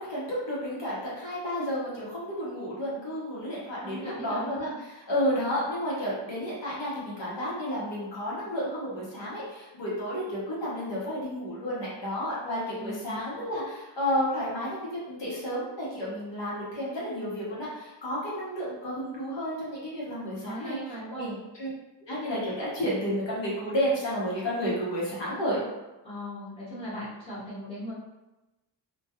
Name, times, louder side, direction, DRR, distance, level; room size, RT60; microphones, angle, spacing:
voice 1, 0.1-20.8 21.1-21.7 22.0-25.6, equal, 65° left, -7 dB, 0.9 m, -31 dB
voice 2, 3.8-4.7 12.8-13.2 20.4-21.3 26.0-27.9, equal, 10° left, -11 dB, 0.9 m, -39 dB
2.3 x 2.2 x 2.7 m, 1.0 s
wide cardioid pair, 170°, 46 cm